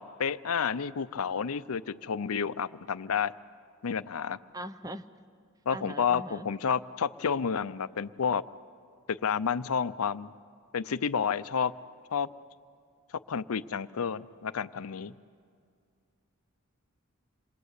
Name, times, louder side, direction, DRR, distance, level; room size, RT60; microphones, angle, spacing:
voice 1, 0.0-3.3 3.8-4.4 5.7-8.4 9.1-10.3 10.7-11.7 12.1-12.3 13.3-15.1, left 6 dB, 85° left, 15 dB, 0.6 m, -30 dB
voice 2, 4.5-5.1 5.7-6.5, right 1 dB, 15° right, 11 dB, 0.6 m, -40 dB
28.0 x 22.0 x 8.2 m, 2.2 s
head